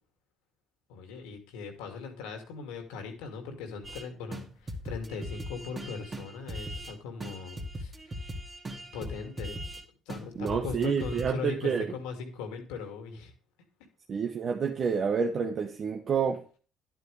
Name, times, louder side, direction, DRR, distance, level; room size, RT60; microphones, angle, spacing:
voice 1, 0.9-8.2 8.9-9.8 10.1-13.3, left 5 dB, 90° left, 5 dB, 2.3 m, -39 dB
sound 1, 3.8-4.0 4.3-4.4 4.7-6.9 7.2-9.8 10.1-10.2 10.5-11.3, equal, 30° right, 2.2 m, -39 dB
voice 2, 10.4-11.9 14.1-16.4, right 6 dB, 45° right, 3 dB, 1.0 m, -29 dB
11.0 x 9.2 x 3.3 m, 0.37 s
supercardioid pair, 85°, 0 cm